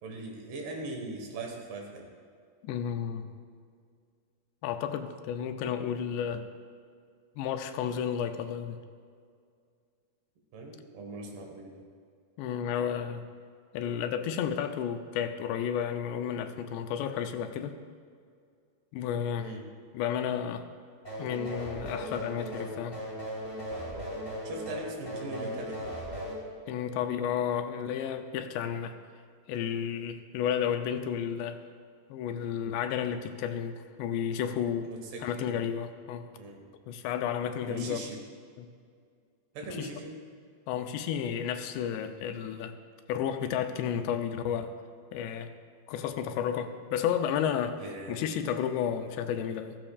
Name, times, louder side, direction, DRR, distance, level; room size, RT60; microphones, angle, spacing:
voice 1, 0.0-2.1 10.5-11.8 19.4-19.7 24.5-25.9 34.8-35.5 36.4-36.6 37.7-38.2 39.5-40.2 47.8-48.2, right 2 dB, 75° right, 1 dB, 3.4 m, -40 dB
voice 2, 2.6-3.3 4.6-6.5 7.4-8.8 12.4-13.2 13.7-17.8 18.9-19.5 19.9-20.6 21.2-23.0 26.7-29.0 29.5-31.6 32.1-34.9 35.2-36.3 36.9-38.0 38.6-38.7 39.8-39.9 40.7-42.7 43.1-44.7 45.1-45.5 45.9-47.8 48.1-49.8, left 8 dB, 85° left, 7 dB, 2.7 m, -32 dB
sound 1, 21.0-26.4, equal, 10° left, 2.3 m, -38 dB
14.5 x 14.5 x 2.4 m, 2.2 s
omnidirectional pair, 5.0 m